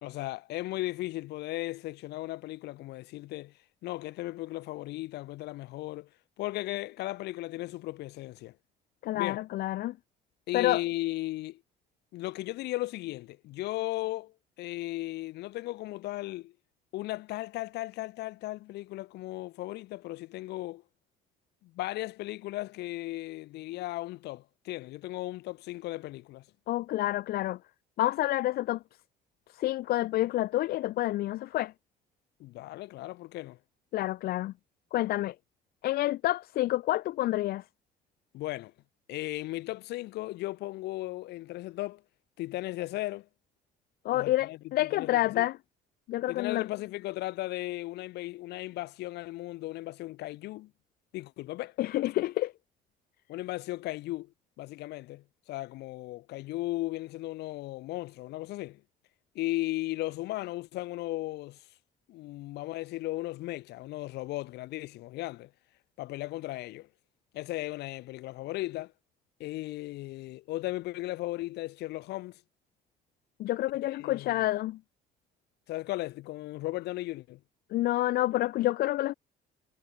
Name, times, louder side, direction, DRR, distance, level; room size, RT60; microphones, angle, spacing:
voice 1, 0.0-3.5 3.8-6.1 6.4-8.6 9.1-9.4 10.5-11.6 12.1-16.5 16.9-20.8 21.6-26.5 32.4-33.6 38.3-38.7 39.1-42.0 42.4-43.3 44.1-45.5 46.3-50.7 51.1-51.8 53.3-58.8 59.4-61.7 62.1-65.5 66.0-66.9 67.3-68.9 69.4-72.4 73.8-74.5 75.7-77.4, left 18 dB, 80° left, 1.7 m, -36 dB
voice 2, 9.0-10.0 10.5-10.8 26.7-27.6 28.0-28.8 29.5-31.7 33.9-34.5 34.9-35.3 35.8-37.6 44.0-45.6 46.1-46.7 51.8-52.5 73.4-74.8 77.7-79.1, left 15 dB, 65° left, 0.5 m, -28 dB
cardioid pair, 110°, 17 cm